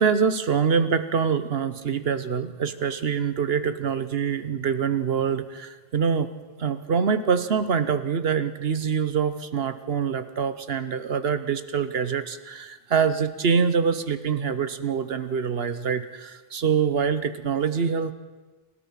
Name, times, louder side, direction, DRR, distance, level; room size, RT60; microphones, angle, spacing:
voice 1, 0.0-6.3 6.6-18.1, right 6 dB, 75° right, 12 dB, 1.2 m, -25 dB
29.0 x 13.0 x 7.3 m, 1.2 s
omnidirectional pair, 1.0 m